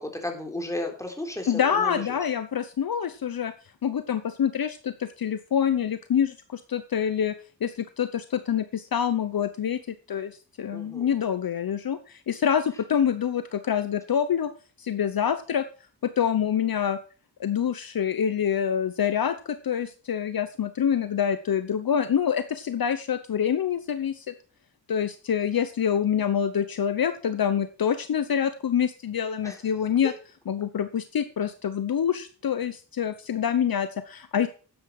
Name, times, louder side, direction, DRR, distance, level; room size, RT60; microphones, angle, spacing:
voice 1, 0.0-2.2 10.7-11.1 29.4-29.6 30.0-30.1, left 1 dB, 5° left, 3 dB, 3.8 m, -34 dB
voice 2, 1.5-3.5 3.8-7.3 7.6-14.5 14.8-15.6 16.0-17.0 17.4-24.3 24.9-30.1 30.5-34.5, left 8 dB, 55° left, 11 dB, 0.9 m, -26 dB
12.5 x 9.6 x 4.8 m, 0.38 s
cardioid pair, 85°, 41 cm